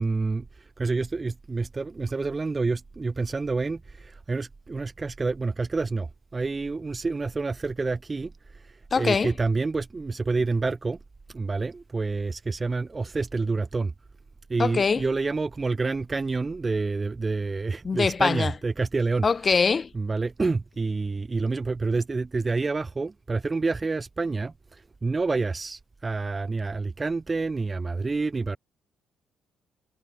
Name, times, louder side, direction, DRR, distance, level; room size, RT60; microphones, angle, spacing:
voice 1, 0.0-11.0 11.3-13.9 14.5-19.3 19.9-28.6, right 3 dB, 25° right, 2.1 m, -28 dB
voice 2, 8.9-9.3 14.6-15.1 17.8-18.5 19.2-19.9, left 5 dB, 35° left, 4.5 m, -23 dB
cardioid pair, 90°, 0 cm